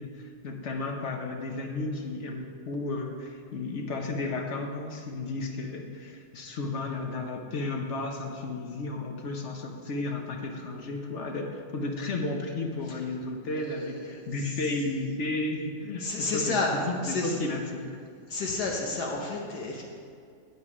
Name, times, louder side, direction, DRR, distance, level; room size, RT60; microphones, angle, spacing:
voice 1, 0.0-18.0, left 2 dB, 55° left, 3 dB, 0.9 m, -33 dB
voice 2, 13.6-14.5 16.0-16.7 17.0-17.4 18.3-19.8, left 3 dB, 70° left, -1 dB, 1.5 m, -31 dB
9.0 x 6.8 x 4.9 m, 2.3 s
omnidirectional pair, 1.8 m